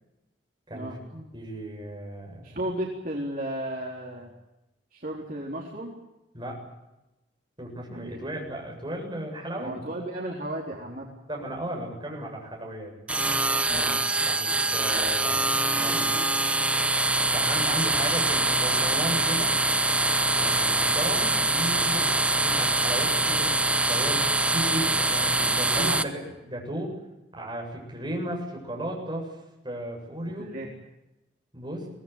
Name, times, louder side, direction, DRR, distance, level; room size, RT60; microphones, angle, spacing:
voice 1, 0.7-2.5 6.3-6.6 7.6-9.9 11.3-12.9 14.3-16.2 17.3-19.5 20.3-24.2 24.5-26.1 26.4-27.0 27.3-29.3 29.6-30.5 31.5-31.9, right 1 dB, 25° right, -1 dB, 7.8 m, -35 dB
voice 2, 2.4-4.3 4.9-5.9 7.9-8.2 9.6-11.1 13.7-14.1 25.8-26.0 30.3-30.7, right 1 dB, 45° right, -2 dB, 4.0 m, -34 dB
sound 1, 13.1-26.0, right 2 dB, 5° right, 0.9 m, -24 dB
24.0 x 19.0 x 9.4 m, 0.95 s
head